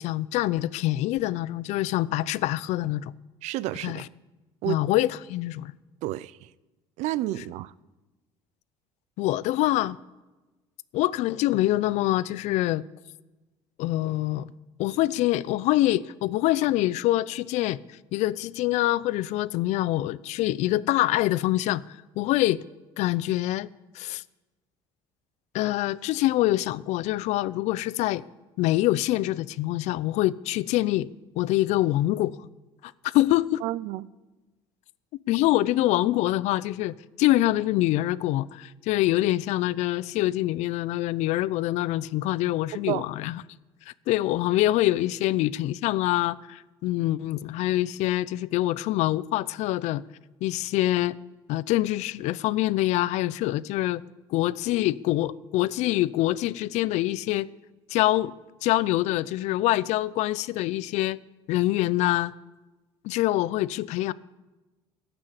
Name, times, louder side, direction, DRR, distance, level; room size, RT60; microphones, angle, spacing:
voice 1, 0.0-3.1 3.8-4.1 4.7-5.7 9.2-10.0 10.9-12.8 13.8-14.5 14.8-22.6 23.0-23.7 23.9-24.2 25.5-28.2 28.6-31.1 31.4-32.4 32.8-33.6 35.3-43.4 43.9-50.0 50.4-51.2 51.5-54.0 54.3-57.5 57.9-58.3 58.6-61.2 61.5-62.3 63.0-64.1, left 16 dB, 70° left, 0.5 m, -25 dB
voice 2, 3.4-4.0 4.6-4.8 6.0-6.4 7.0-7.7 33.6-34.1 42.9-43.1, right 15 dB, 70° right, 0.5 m, -30 dB
14.5 x 6.1 x 8.9 m
supercardioid pair, 85°, 12 cm